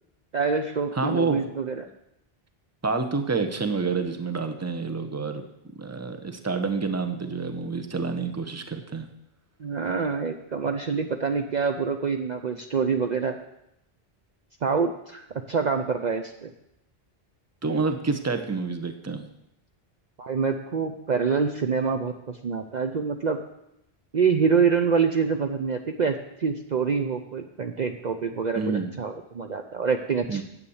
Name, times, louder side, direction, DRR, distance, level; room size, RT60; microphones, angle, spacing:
voice 1, 0.3-1.9 9.6-13.4 14.6-16.5 20.2-23.4 24.1-30.4, right 5 dB, 50° right, 5 dB, 0.7 m, -26 dB
voice 2, 0.9-1.4 2.8-5.4 5.8-9.1 17.6-19.3 28.5-28.9 30.3-30.4, right 4 dB, 15° right, 7 dB, 0.8 m, -28 dB
9.8 x 8.1 x 7.1 m, 0.85 s
omnidirectional pair, 1.1 m